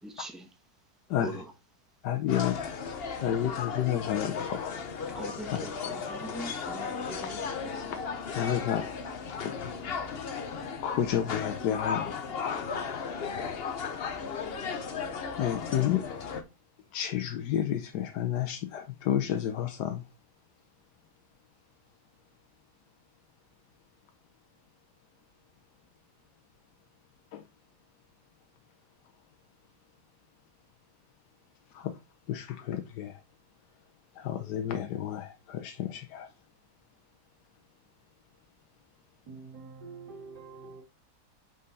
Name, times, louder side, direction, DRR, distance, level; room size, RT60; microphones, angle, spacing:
voice 1, 0.0-0.5 1.2-1.5 5.1-7.8, right 1 dB, ahead, 0.9 m, -42 dB
voice 2, 2.0-2.5 3.2-4.7 5.5-5.6 8.3-8.8 9.4-9.7 10.6-12.1 15.4-16.0 16.9-20.0 27.3-27.4 31.7-31.9 32.3-33.1 34.2-36.3, left 10 dB, 85° left, 1.3 m, -30 dB
sound 1, 2.3-16.4, left 6 dB, 50° left, 0.8 m, -35 dB
voice 3, 39.3-40.8, right 4 dB, 85° right, 2.5 m, -46 dB
5.5 x 5.3 x 4.0 m
omnidirectional pair, 1.7 m